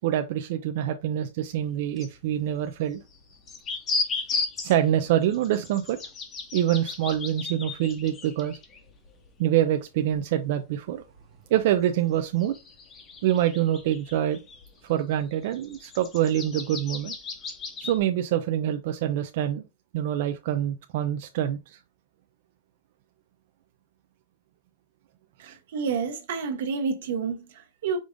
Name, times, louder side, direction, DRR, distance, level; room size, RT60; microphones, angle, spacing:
voice 1, 0.0-3.0 4.3-6.0 6.5-8.6 9.4-11.0 11.5-12.5 13.2-14.4 14.8-17.1 17.8-19.6 19.9-21.8 25.4-25.5, right 11 dB, 50° right, 0.3 m, -25 dB
sound 1, 1.6-1.7 2.0-2.1 3.1-9.3 9.6-9.7 10.1-10.2 11.6-11.7 12.3-14.7 15.1-18.0, left 4 dB, 20° left, 0.7 m, -35 dB
voice 2, 25.4-28.0, right 5 dB, 65° right, 0.9 m, -29 dB
4.9 x 2.5 x 3.6 m
supercardioid pair, 165°, 0 cm